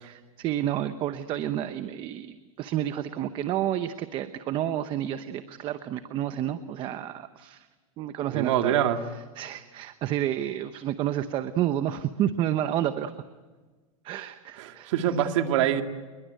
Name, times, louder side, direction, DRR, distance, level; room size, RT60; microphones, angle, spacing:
voice 1, 0.0-7.7 8.0-8.8 9.4-13.1 14.0-14.9, right 11 dB, 30° right, 11 dB, 0.9 m, -30 dB
voice 2, 8.3-9.0 14.6-15.8, right 10 dB, 60° right, 6 dB, 2.2 m, -24 dB
27.5 x 22.0 x 9.1 m, 1.3 s
supercardioid pair, 155°, 18 cm